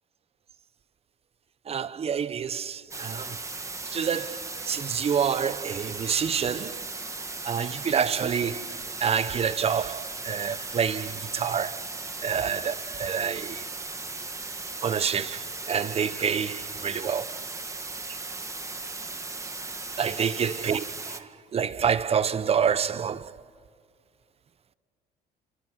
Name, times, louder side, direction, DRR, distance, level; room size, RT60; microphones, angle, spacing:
voice 1, 1.7-3.4 3.9-6.8 7.5-8.7 9.0-11.8 12.2-13.6 14.8-17.3 20.0-23.3, right 7 dB, 35° right, 0.8 m, -28 dB
sound 1, 2.9-21.2, right 3 dB, 20° right, 1.6 m, -37 dB
29.0 x 27.0 x 6.2 m
cardioid pair, 110°, 17 cm